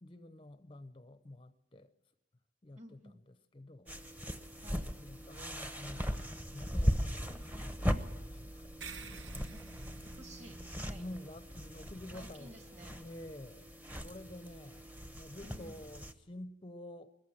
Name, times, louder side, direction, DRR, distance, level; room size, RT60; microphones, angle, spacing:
voice 1, 0.0-1.9 2.6-3.9 5.0-6.1 6.5-9.2 10.9-12.5 13.0-13.7 14.0-17.1, left 1 dB, 25° left, 0.6 m, -50 dB
voice 2, 2.8-3.2 4.6-4.9 9.5-9.6 10.1-11.0 12.1-13.0 15.4-15.8, right 1 dB, 35° right, 2.2 m, -53 dB
sound 1, 3.9-16.1, equal, 10° right, 0.9 m, -38 dB
sound 2, 8.8-13.6, right 4 dB, 70° right, 1.2 m, -52 dB
21.0 x 14.5 x 9.3 m
head